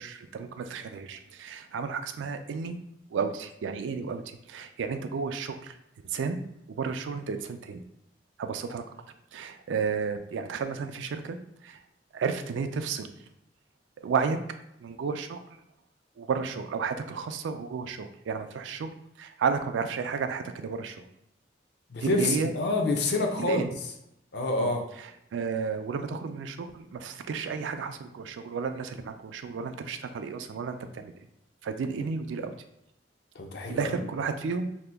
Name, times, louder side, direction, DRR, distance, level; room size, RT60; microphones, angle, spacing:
voice 1, 0.0-2.8 3.1-5.8 6.1-6.4 6.8-7.8 8.4-8.8 9.3-11.4 11.6-11.8 12.1-13.1 14.0-14.4 14.8-15.4 16.2-18.9 19.2-21.0 22.0-22.5 23.4-23.7 24.6-24.7 25.3-31.1 31.6-32.5 33.7-34.7, right 5 dB, 85° right, 8 dB, 0.3 m, -32 dB
voice 2, 21.9-23.7 24.3-24.8 33.3-33.9, left 2 dB, 60° left, 3 dB, 0.5 m, -27 dB
2.8 x 2.2 x 3.4 m, 0.82 s
head